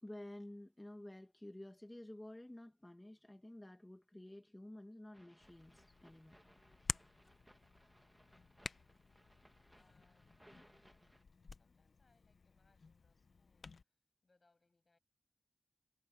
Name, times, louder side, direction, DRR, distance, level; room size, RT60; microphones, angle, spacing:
voice 1, 0.0-6.4, left 1 dB, 15° left, 1.7 m, -52 dB
sound 1, 5.1-11.2, equal, 5° right, 2.0 m, -67 dB
Hands, 5.4-13.8, left 4 dB, 65° left, 0.8 m, -50 dB
voice 2, 7.5-8.3 9.7-15.0, left 3 dB, 45° left, 7.3 m, -79 dB
cardioid pair, 40°, 0 cm